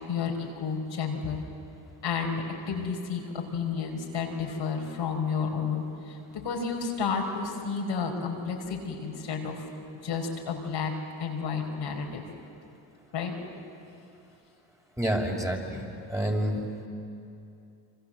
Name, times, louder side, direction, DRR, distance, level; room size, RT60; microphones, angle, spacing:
voice 1, 0.1-1.4 2.0-9.7 10.0-10.9 11.2-12.2 13.1-13.3, left 5 dB, 65° left, 0 dB, 5.0 m, -31 dB
voice 2, 15.0-16.6, equal, 5° right, 0 dB, 5.7 m, -28 dB
28.5 x 25.0 x 7.8 m, 2.6 s
supercardioid pair, 65°, 47 cm